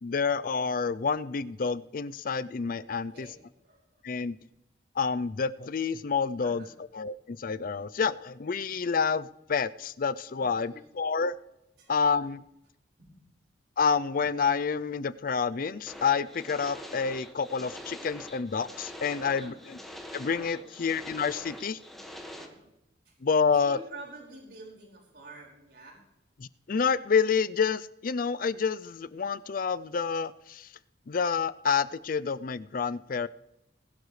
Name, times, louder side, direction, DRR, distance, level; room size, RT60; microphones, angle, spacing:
voice 1, 0.0-3.3 4.0-4.4 5.0-6.6 6.9-11.4 11.9-12.4 13.8-19.8 20.1-21.8 23.2-23.8 26.4-30.7 31.1-33.3, left 5 dB, 50° left, 16 dB, 0.5 m, -28 dB
voice 2, 3.1-4.0 6.4-6.7 10.4-11.0 11.8-11.9 13.0-13.2 19.2-19.6 20.5-20.7 22.3-22.6 23.1-23.2 23.5-26.0, right 2 dB, 65° right, -2 dB, 5.4 m, -49 dB
sound 1, 15.9-22.5, equal, ahead, 1.7 m, -44 dB
20.0 x 11.5 x 3.3 m, 0.87 s
head